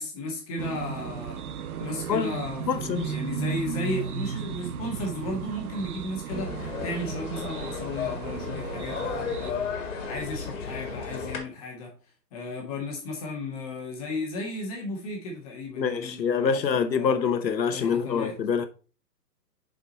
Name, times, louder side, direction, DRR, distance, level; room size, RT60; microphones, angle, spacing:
voice 1, 0.0-1.4 1.8-11.9 12.3-17.1 17.7-18.3, left 1 dB, 20° left, 1.6 m, -35 dB
sound 1, 0.6-9.5, right 7 dB, 60° right, 0.8 m, -35 dB
voice 2, 2.7-3.1 15.8-18.7, left 6 dB, 85° left, 1.2 m, -25 dB
sound 2, 6.3-11.4, left 5 dB, 45° left, 2.0 m, -34 dB
7.1 x 5.1 x 4.1 m
hypercardioid pair, 160°, 50 cm